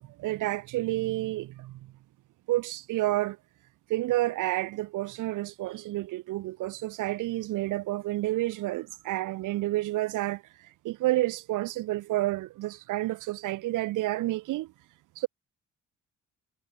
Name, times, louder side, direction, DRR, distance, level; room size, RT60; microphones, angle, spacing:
voice 1, 0.0-1.8 2.5-3.4 3.9-10.4 10.8-14.7 15.2-15.3, right 17 dB, 90° right, 1.5 m, -30 dB
cardioid pair, 90°, 30 cm